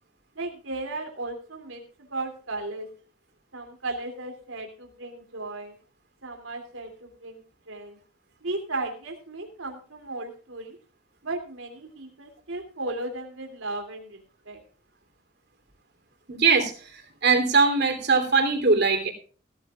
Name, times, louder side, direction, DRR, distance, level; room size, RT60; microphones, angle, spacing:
voice 1, 0.3-1.8 2.1-2.9 3.5-5.7 6.2-8.0 8.4-10.8 11.2-14.6, right 2 dB, 90° right, 4 dB, 2.9 m, -35 dB
voice 2, 16.3-16.7 17.2-19.1, right 4 dB, 55° right, 5 dB, 3.2 m, -21 dB
18.0 x 13.0 x 2.4 m, 0.38 s
head